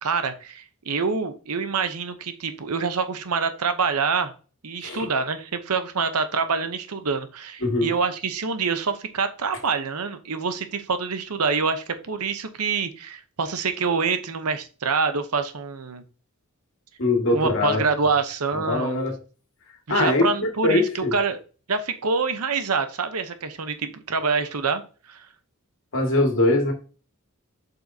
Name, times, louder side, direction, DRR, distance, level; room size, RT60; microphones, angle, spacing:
voice 1, 0.0-4.3 4.6-16.0 17.3-19.0 19.9-21.4 21.7-24.8 25.1-25.3, right 5 dB, 80° right, 9 dB, 0.9 m, -26 dB
voice 2, 17.0-17.8 18.5-19.1 19.9-21.1 25.9-26.7, left 2 dB, 60° left, 2 dB, 2.1 m, -22 dB
7.5 x 5.5 x 2.8 m, 0.36 s
head